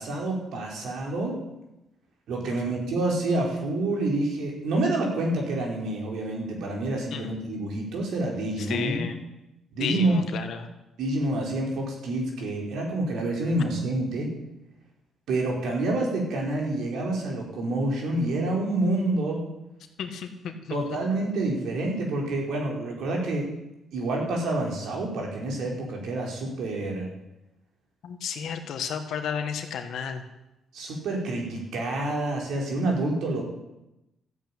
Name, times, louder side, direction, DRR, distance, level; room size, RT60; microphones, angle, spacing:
voice 1, 0.0-1.4 2.3-9.0 9.7-10.2 11.0-14.3 15.3-19.4 20.7-23.5 23.9-27.1 30.7-33.4, right 2 dB, 75° right, -1 dB, 4.7 m, -28 dB
voice 2, 8.7-9.2 9.8-10.6 20.0-21.0 28.0-30.2, left 7 dB, 75° left, 7 dB, 1.7 m, -32 dB
13.5 x 8.6 x 9.0 m, 0.94 s
cardioid pair, 90°, 0 cm